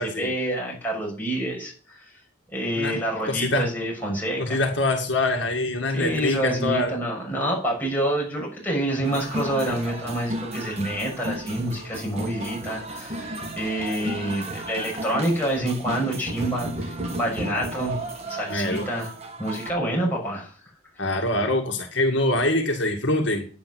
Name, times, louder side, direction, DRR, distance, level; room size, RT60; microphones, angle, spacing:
voice 1, 0.0-2.0 2.5-4.6 5.9-18.0 18.3-19.1 19.4-20.5, right 1 dB, 10° left, -3 dB, 6.5 m, -27 dB
voice 2, 3.3-3.6 4.4-6.9 18.5-18.9 21.0-23.5, left 2 dB, 70° left, 2 dB, 2.0 m, -24 dB
sound 1, 9.0-19.7, right 1 dB, 35° right, 1.9 m, -34 dB
10.5 x 8.6 x 7.8 m, 0.41 s
head